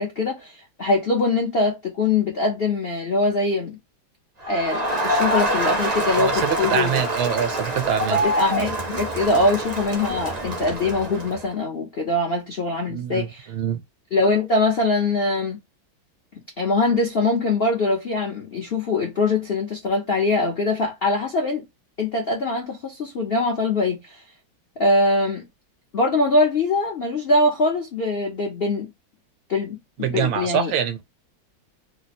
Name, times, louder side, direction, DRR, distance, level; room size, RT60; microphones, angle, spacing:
voice 1, 0.0-3.8 4.5-7.0 8.1-13.4 14.1-15.6 16.6-21.7 22.0-24.2 24.8-25.5 25.9-28.9 29.5-30.7, left 2 dB, 65° left, 0.6 m, -23 dB
Crowd, 4.4-11.5, right 1 dB, 50° right, 0.5 m, -25 dB
voice 2, 6.1-8.2 12.9-13.8 30.0-31.0, right 9 dB, 80° right, 1.4 m, -25 dB
3.2 x 2.1 x 4.1 m
omnidirectional pair, 2.1 m